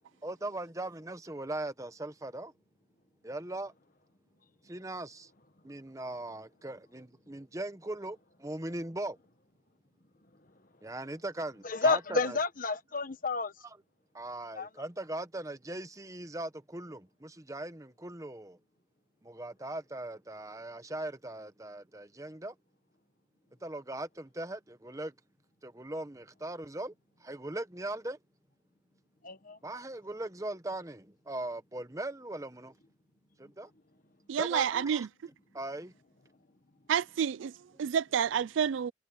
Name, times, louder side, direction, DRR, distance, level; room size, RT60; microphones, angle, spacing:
voice 1, 0.2-2.5 3.2-3.7 4.6-5.3 5.6-9.2 10.8-12.4 14.1-18.6 19.2-22.5 23.6-25.1 25.6-26.9 27.2-28.2 29.6-32.7 33.4-33.7 34.4-35.1 35.5-35.9, right 1 dB, 15° right, 0.9 m, -39 dB
voice 2, 11.6-13.5 14.5-14.7 29.2-29.6, left 4 dB, 45° left, 1.3 m, -30 dB
voice 3, 34.3-35.1 36.9-38.9, right 8 dB, 75° right, 0.4 m, -29 dB
head